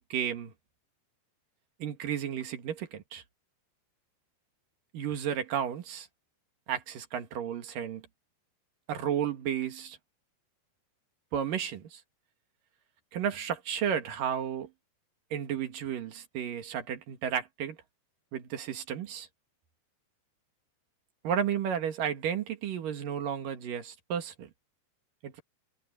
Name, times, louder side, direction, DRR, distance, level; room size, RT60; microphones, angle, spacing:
voice 1, 0.1-0.5 1.8-3.2 4.9-6.1 6.7-8.0 8.9-10.0 11.3-12.0 13.1-14.7 15.3-17.8 18.3-19.3 21.2-24.5 25.2-25.4, right 8 dB, 60° right, 3.1 m, -33 dB
omnidirectional pair, 4.9 m